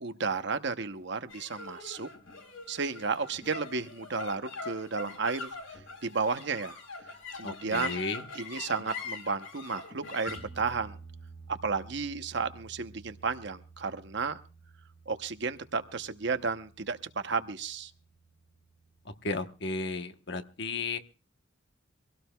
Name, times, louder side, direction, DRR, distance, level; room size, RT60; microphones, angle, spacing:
voice 1, 0.0-2.1 2.7-6.8 7.3-8.0 8.3-11.0 11.5-14.4 15.1-17.9, right 4 dB, 55° right, 10 dB, 0.8 m, -33 dB
sound 1, 1.3-17.8, left 3 dB, 90° left, 3.9 m, -44 dB
voice 2, 7.4-8.2 19.1-21.0, left 3 dB, 55° left, 8 dB, 1.1 m, -34 dB
24.0 x 17.0 x 2.3 m, 0.34 s
head